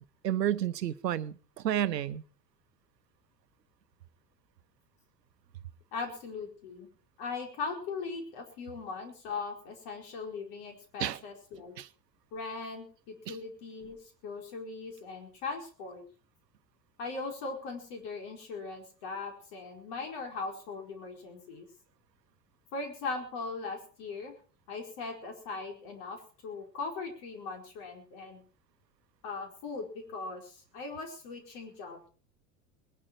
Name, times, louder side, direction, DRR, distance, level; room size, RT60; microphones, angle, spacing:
voice 1, 0.2-2.2 11.0-11.2 11.8-11.9 13.3-13.4, right 11 dB, 80° right, 0.9 m, -31 dB
voice 2, 5.9-6.9 7.2-11.7 12.3-16.0 17.0-21.6 22.7-24.3 24.7-28.4 29.2-32.1, left 4 dB, 55° left, 4.8 m, -39 dB
20.5 x 12.5 x 4.7 m
figure-of-eight pair, 75°, 49 cm